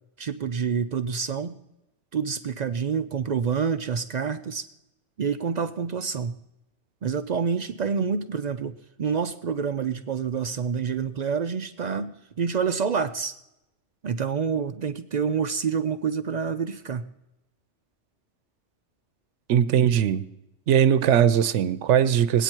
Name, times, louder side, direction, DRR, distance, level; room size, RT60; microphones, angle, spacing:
voice 1, 0.2-1.6 2.1-4.7 5.2-6.4 7.0-13.4 14.0-17.0, right 6 dB, 55° right, 10 dB, 0.5 m, -27 dB
voice 2, 19.5-20.2 20.7-22.4, right 9 dB, 90° right, 15 dB, 0.9 m, -20 dB
20.0 x 9.0 x 4.5 m, 0.91 s
omnidirectional pair, 1.2 m